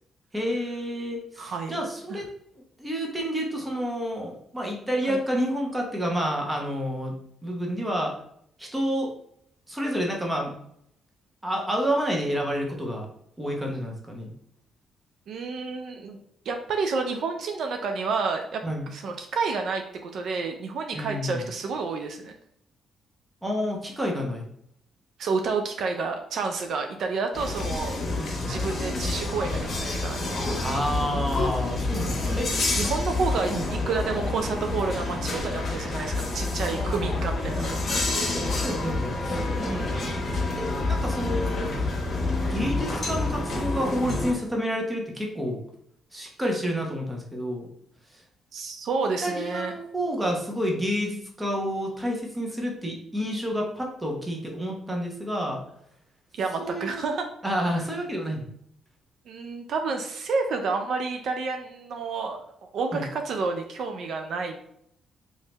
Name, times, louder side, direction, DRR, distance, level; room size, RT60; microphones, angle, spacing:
voice 1, 0.3-2.3 2.8-7.1 7.4-8.1 8.6-9.1 9.7-10.5 11.4-13.1 13.4-14.3 18.6-18.8 20.9-21.5 23.4-24.5 28.2-28.5 30.6-32.6 33.5-33.7 36.8-37.2 38.4-39.7 40.5-41.8 42.4-45.6 46.1-47.7 49.2-55.6 56.6-57.0 57.4-58.4 62.9-63.1, equal, 10° right, 0 dB, 0.9 m, -29 dB
voice 2, 1.4-1.8 2.1-2.2 5.1-5.2 15.3-16.2 16.5-22.3 25.2-28.0 28.4-30.5 32.0-32.4 32.7-38.1 38.5-38.6 39.7-40.2 48.5-49.7 56.4-57.3 59.3-62.4 62.7-64.5, right 4 dB, 65° right, 4 dB, 0.4 m, -30 dB
sound 1, 27.3-44.3, left 2 dB, 45° left, 1.0 m, -28 dB
3.1 x 2.8 x 3.3 m, 0.71 s
cardioid pair, 90°, 0 cm